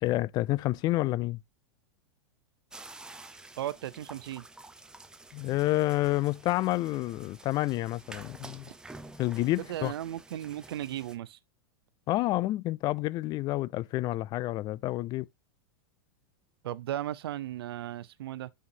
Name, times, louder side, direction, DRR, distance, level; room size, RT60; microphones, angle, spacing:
voice 1, 0.0-1.4 5.3-8.6 9.2-9.9 12.1-15.3, left 17 dB, 30° left, 0.3 m, -29 dB
sound 1, 2.7-11.2, right 2 dB, 5° right, 0.6 m, -50 dB
voice 2, 3.6-4.5 9.6-11.4 16.6-18.5, right 12 dB, 80° right, 0.7 m, -36 dB
9.5 x 5.7 x 2.8 m
supercardioid pair, 130°, 13 cm